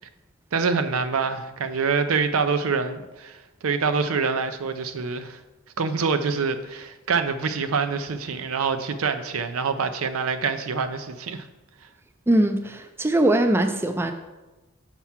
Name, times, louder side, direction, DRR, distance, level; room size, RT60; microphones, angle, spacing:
voice 1, 0.5-5.4 5.8-11.5, right 5 dB, 80° right, 10 dB, 0.5 m, -25 dB
voice 2, 12.3-14.1, right 1 dB, 10° right, 7 dB, 0.3 m, -21 dB
5.9 x 4.6 x 5.7 m, 1.1 s
head